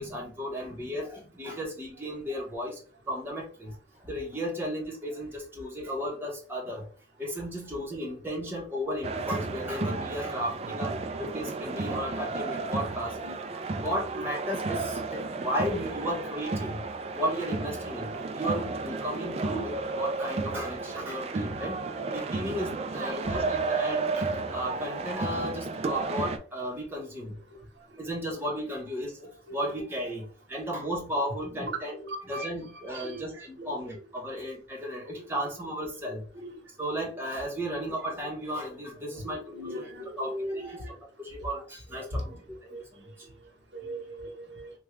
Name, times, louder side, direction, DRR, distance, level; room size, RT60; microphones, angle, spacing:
voice 1, 0.0-2.8 3.1-3.8 4.0-6.9 7.2-13.2 13.5-16.8 17.2-21.8 22.1-27.4 28.0-29.2 29.5-32.0 32.3-36.2 36.8-39.9 40.2-40.8 41.2-42.3 42.6-43.3 43.8-44.0, equal, 10° right, -3 dB, 0.9 m, -34 dB
sound 1, 9.0-26.4, right 3 dB, 35° right, 0.3 m, -32 dB
voice 2, 16.3-16.7 18.5-18.7 19.6-20.0 20.8-20.9 21.6-22.0 23.0-23.3 29.6-29.8 31.5-32.5 32.9-33.8 35.1-35.2 36.0-36.5 37.6-37.8 39.1-40.8 41.9-42.4 42.7-42.8 43.7-44.7, right 1 dB, 85° right, 1 dB, 0.9 m, -39 dB
3.4 x 2.3 x 3.1 m, 0.41 s
head